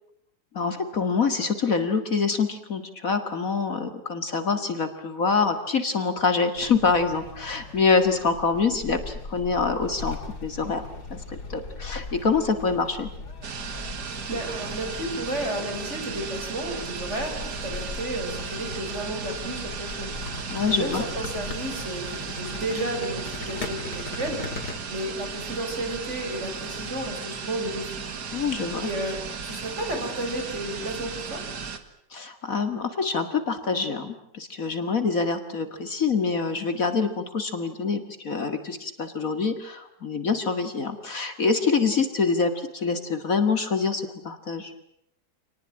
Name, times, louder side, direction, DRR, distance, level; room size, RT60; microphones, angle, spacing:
voice 1, 0.5-10.8 11.1-13.1 20.5-21.0 28.3-28.9 32.1-44.7, left 4 dB, 50° left, 8 dB, 2.4 m, -25 dB
sound 1, 6.6-24.8, left 3 dB, 70° left, 3.2 m, -39 dB
sound 2, 13.4-31.8, right 6 dB, 75° right, 2.4 m, -35 dB
voice 2, 14.1-20.1 20.7-24.4 24.9-27.9 28.8-31.4, right 1 dB, 40° right, 3 dB, 6.3 m, -32 dB
27.5 x 20.0 x 8.8 m, 0.74 s
omnidirectional pair, 1.8 m